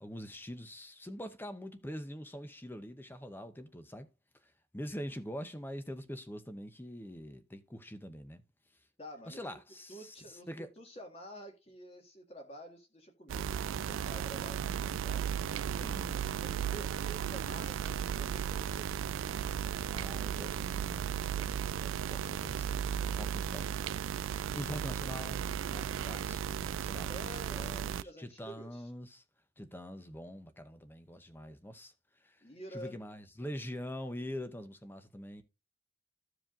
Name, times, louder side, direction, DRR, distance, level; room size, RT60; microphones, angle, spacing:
voice 1, 0.0-4.1 4.7-8.4 9.3-10.1 10.5-10.7 15.8-16.3 19.9-22.8 23.1-29.2 29.6-31.9 32.2-32.4 32.7-35.4, equal, 10° left, 0.7 m, -44 dB
voice 2, 9.0-9.6 9.9-15.7 16.4-19.1 26.7-28.9 32.4-33.0, right 1 dB, 30° left, 1.9 m, -50 dB
sound 1, 13.3-28.0, right 8 dB, 85° right, 0.3 m, -35 dB
14.5 x 4.9 x 2.5 m
head